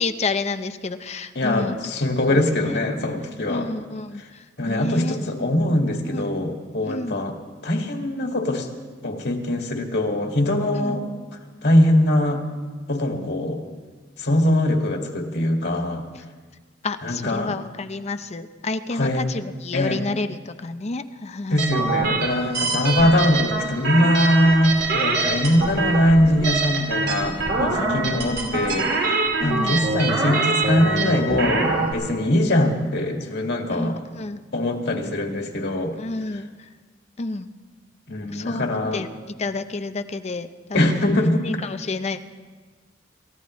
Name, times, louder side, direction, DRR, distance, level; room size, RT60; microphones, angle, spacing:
voice 1, 0.0-1.8 2.3-2.8 3.5-5.5 6.1-6.3 6.8-7.2 10.7-11.0 16.8-21.7 27.8-28.6 29.4-29.8 33.7-34.4 36.0-36.7 37.2-37.5 38.3-38.7 38.9-39.1 39.4-42.2, left 3 dB, 35° left, 9 dB, 0.6 m, -30 dB
voice 2, 1.4-3.7 4.6-7.3 7.6-8.7 9.0-11.1 11.6-12.5 12.9-13.6 14.2-16.0 17.0-17.5 18.9-19.2 19.7-20.0 21.5-34.0 34.5-36.0 38.1-39.0 40.7-41.5, left 1 dB, 65° left, 2 dB, 2.0 m, -22 dB
sound 1, 21.6-31.9, right 3 dB, 65° right, 2.2 m, -24 dB
28.5 x 15.0 x 3.2 m, 1.4 s
head